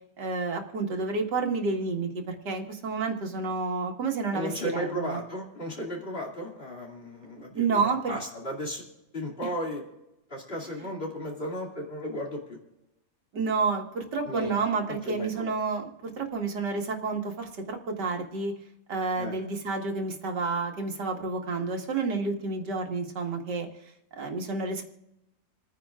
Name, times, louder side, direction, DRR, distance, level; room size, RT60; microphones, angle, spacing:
voice 1, 0.2-5.2 7.5-8.1 13.3-18.5 18.9-23.7 24.2-24.8, right 4 dB, 90° right, 2 dB, 2.2 m, -30 dB
voice 2, 4.3-8.8 9.1-9.8 10.3-12.6 14.2-14.6 14.9-15.5 19.2-19.4, equal, 35° left, -1 dB, 2.8 m, -35 dB
28.5 x 9.8 x 2.4 m, 0.92 s
omnidirectional pair, 1.8 m